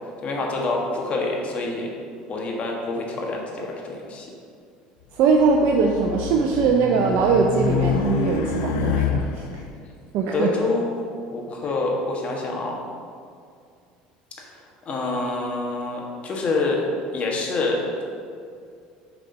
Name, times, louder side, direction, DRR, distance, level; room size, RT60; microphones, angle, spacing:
voice 1, 0.2-1.9 2.3-4.3 10.3-10.9 11.3-12.7 14.4-14.5 14.8-16.8 17.1-18.0, left 3 dB, 40° left, -1 dB, 1.6 m, -26 dB
voice 2, 5.1-9.4 10.1-10.5, right 5 dB, 65° right, 1 dB, 0.6 m, -21 dB
Race car auto racing, 5.3-9.7, left 7 dB, 75° left, 0.4 m, -27 dB
6.6 x 4.1 x 5.3 m, 2.3 s
hypercardioid pair, 80°, 3 cm